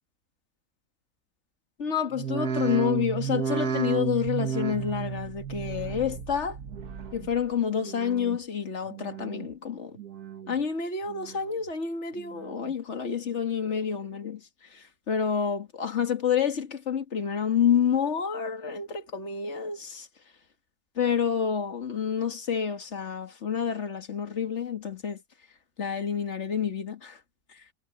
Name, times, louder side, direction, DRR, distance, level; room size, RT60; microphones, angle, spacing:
voice 1, 1.8-6.6 7.1-10.0 10.5-20.1 21.0-25.2 25.8-27.2 27.5-27.6, left 7 dB, 50° left, 2.2 m, -29 dB
sound 1, 2.1-7.5 7.8-8.4 8.8-9.5 9.9-10.6 11.0-11.7 12.2-12.7 13.3-13.4, right 7 dB, 80° right, 2.0 m, -33 dB
omnidirectional pair, 1.6 m